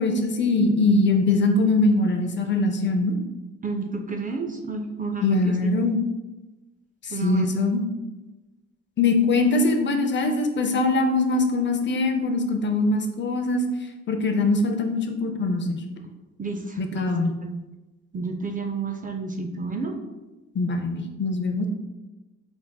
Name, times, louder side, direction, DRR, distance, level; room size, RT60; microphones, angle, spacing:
voice 1, 0.0-3.1 5.2-6.0 7.0-7.8 9.0-13.6 14.1-15.8 16.8-17.3 20.5-21.7, left 2 dB, 40° left, 5 dB, 0.5 m, -22 dB
voice 2, 3.6-5.8 7.1-7.5 16.4-17.1 17.4-17.6 18.1-19.9, right 4 dB, 30° right, 4 dB, 0.4 m, -30 dB
4.2 x 3.4 x 2.2 m, 1.1 s
cardioid pair, 90°, 30 cm